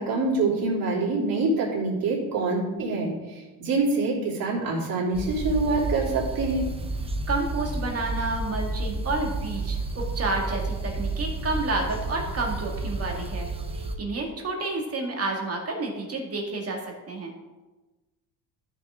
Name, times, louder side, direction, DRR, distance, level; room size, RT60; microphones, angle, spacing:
voice 1, 0.0-6.7, right 3 dB, 50° right, -4 dB, 3.2 m, -25 dB
sound 1, 5.1-13.9, right 2 dB, 15° right, 0.8 m, -31 dB
voice 2, 7.3-13.5 13.7-16.8 17.1-17.3, right 2 dB, 30° right, 1 dB, 2.1 m, -30 dB
13.0 x 5.9 x 3.7 m, 1.2 s
cardioid pair, 130°, 44 cm